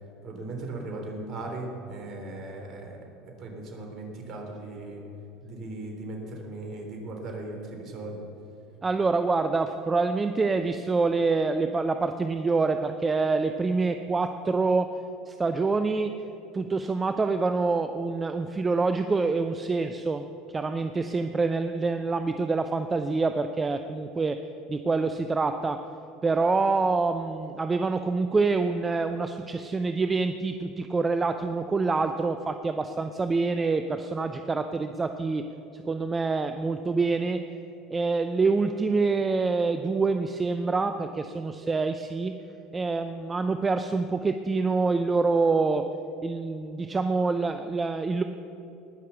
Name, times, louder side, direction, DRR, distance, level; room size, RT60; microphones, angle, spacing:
voice 1, 0.2-3.0 3.4-5.0 5.4-8.2, right 2 dB, 45° right, 1 dB, 3.5 m, -38 dB
voice 2, 8.8-14.9 15.3-16.1 16.5-20.2 20.5-24.4 24.7-25.8 26.2-35.4 35.7-37.4 37.9-42.3 42.7-45.9 46.2-48.2, right 3 dB, 20° right, 8 dB, 0.6 m, -26 dB
19.5 x 6.6 x 6.9 m, 2.9 s
hypercardioid pair, 85°, 0 cm